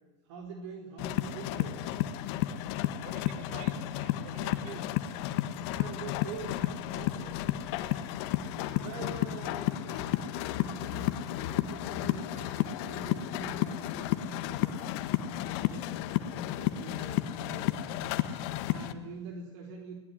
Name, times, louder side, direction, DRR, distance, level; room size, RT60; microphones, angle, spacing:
voice 1, 0.3-1.8 5.4-8.1 8.8-18.1 18.4-19.9, right 4 dB, 75° right, 2 dB, 3.7 m, -45 dB
sound 1, 1.0-18.9, left 13 dB, 65° left, 1.8 m, -32 dB
voice 2, 2.5-4.9 8.4-8.9, right 7 dB, 55° right, 9 dB, 4.8 m, -49 dB
30.0 x 19.5 x 9.9 m, 1.1 s
hypercardioid pair, 80°, 15 cm